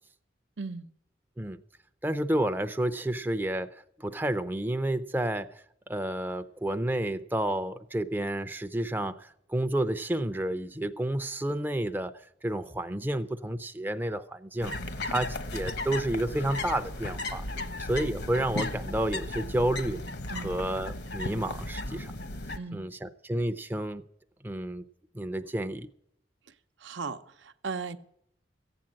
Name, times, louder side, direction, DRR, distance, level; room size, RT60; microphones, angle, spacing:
voice 1, 0.6-0.9 20.3-20.5 22.6-22.9 26.8-28.0, right 4 dB, 80° right, 0.8 m, -37 dB
voice 2, 2.0-5.5 5.9-14.7 15.1-17.5 17.8-20.0 20.3-22.1 22.7-24.0 24.4-24.8 25.1-25.9, right 1 dB, 10° right, 0.5 m, -30 dB
sound 1, 14.6-22.6, left 2 dB, 60° left, 1.1 m, -35 dB
15.0 x 8.9 x 7.4 m
head